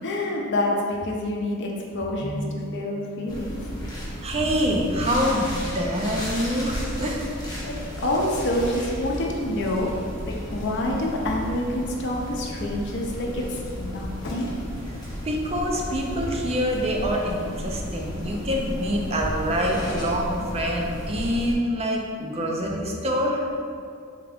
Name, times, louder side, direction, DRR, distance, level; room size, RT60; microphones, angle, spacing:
voice 1, 0.0-2.4 2.7-3.6 7.6-9.9 10.5-14.5, left 1 dB, 60° left, -1 dB, 0.6 m, -27 dB
voice 2, 2.2-2.9 4.2-7.3 15.2-23.6, equal, 30° right, -1 dB, 0.5 m, -26 dB
sound 1, 3.3-21.5, equal, 20° left, 0.9 m, -34 dB
3.6 x 3.4 x 3.5 m, 2.3 s
head